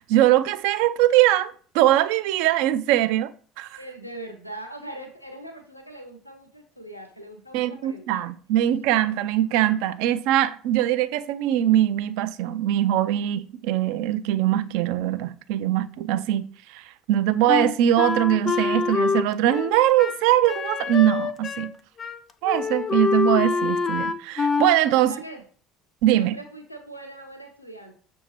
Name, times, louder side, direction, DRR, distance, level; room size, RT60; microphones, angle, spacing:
voice 1, 0.0-3.3 3.6-3.8 7.5-16.5 16.7-21.7 22.4-25.1 26.0-26.3, right 13 dB, 60° right, 0.3 m, -22 dB
voice 2, 3.8-8.3 25.0-25.4 26.1-27.9, right 1 dB, 90° left, 0.5 m, -41 dB
Wind instrument woodwind instrument, 17.5-21.7 22.0-22.2 22.4-24.8, left 5 dB, 30° left, 0.4 m, -25 dB
6.3 x 2.7 x 2.9 m
figure-of-eight pair, 60°, 0 cm